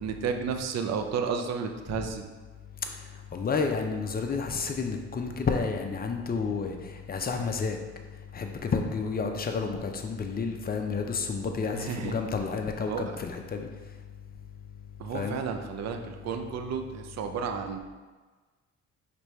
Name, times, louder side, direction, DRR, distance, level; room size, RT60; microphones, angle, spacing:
voice 1, 0.0-2.3 11.7-12.1 12.9-13.0 15.0-17.8, right 6 dB, 60° right, 6 dB, 0.6 m, -32 dB
voice 2, 3.3-6.7 7.1-7.8 8.3-13.7 15.1-15.4, left 4 dB, 30° left, 4 dB, 0.6 m, -30 dB
4.9 x 3.3 x 3.1 m, 1.3 s
cardioid pair, 90°, 30 cm